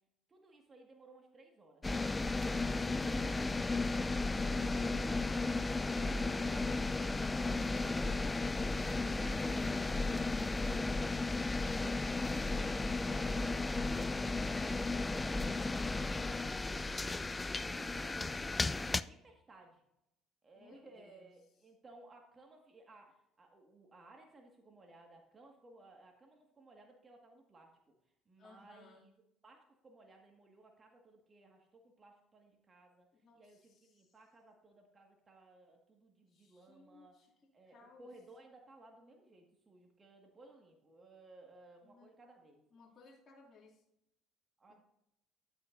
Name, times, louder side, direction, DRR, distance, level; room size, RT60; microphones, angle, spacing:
voice 1, 0.3-3.9 7.7-19.8 20.4-27.9 28.3-29.1 29.4-33.1 33.3-37.2 37.5-42.6 44.6-44.7, right 2 dB, 30° right, 2 dB, 1.8 m, -60 dB
sound 1, 1.8-19.0, left 3 dB, 20° left, 0.4 m, -34 dB
voice 2, 7.9-8.6 20.5-21.4 28.4-29.1 33.2-34.2 36.3-37.3 37.7-38.1 41.8-42.2 42.7-43.8 44.7-44.8, left 3 dB, 40° left, -4 dB, 2.7 m, -60 dB
11.0 x 9.1 x 2.7 m, 0.82 s
supercardioid pair, 70°, 0 cm